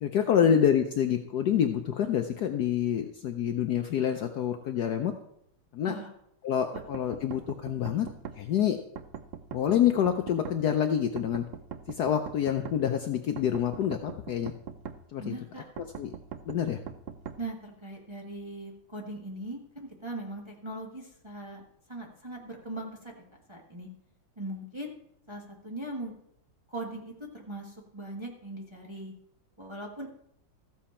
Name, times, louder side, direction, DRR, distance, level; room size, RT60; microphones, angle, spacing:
voice 1, 0.0-5.1 5.7-5.9 6.4-8.1 8.4-8.8 9.5-11.4 11.9-14.5 15.1-15.3 16.0-16.1 16.5-16.8, left 9 dB, 65° left, 6 dB, 1.0 m, -27 dB
sound 1, 6.8-8.4 9.0-10.6 11.2-12.8 13.4-15.0 15.8-17.4, right 8 dB, 75° right, 0.7 m, -41 dB
voice 2, 15.2-15.6 17.4-21.6 21.9-23.9 24.4-24.9 25.3-26.1 26.7-29.1 29.6-30.1, right 1 dB, 15° right, -1 dB, 1.1 m, -40 dB
14.0 x 7.6 x 4.3 m, 0.74 s
omnidirectional pair, 2.2 m